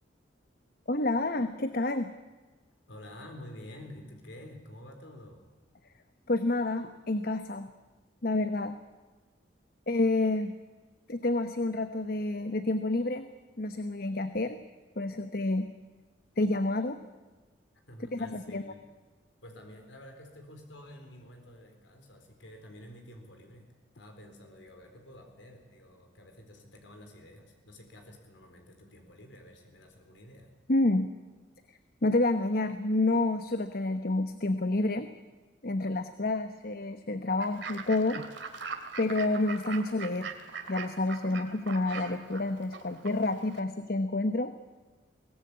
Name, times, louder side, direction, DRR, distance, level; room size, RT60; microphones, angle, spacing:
voice 1, 0.9-2.1 6.3-7.7 8.2-8.8 9.9-10.5 11.1-13.3 13.6-14.6 15.0-15.7 16.4-17.0 18.1-18.6 30.7-31.1 32.0-35.1 35.6-38.2 39.0-40.3 40.7-44.5, left 2 dB, 50° left, 10 dB, 1.0 m, -29 dB
voice 2, 2.9-5.4 17.9-18.9 19.4-23.7 23.9-30.5, left 1 dB, 75° left, 4 dB, 4.1 m, -49 dB
Fowl / Bird, 37.4-43.6, right 5 dB, 70° right, 2.5 m, -42 dB
23.0 x 18.5 x 8.6 m, 1.3 s
head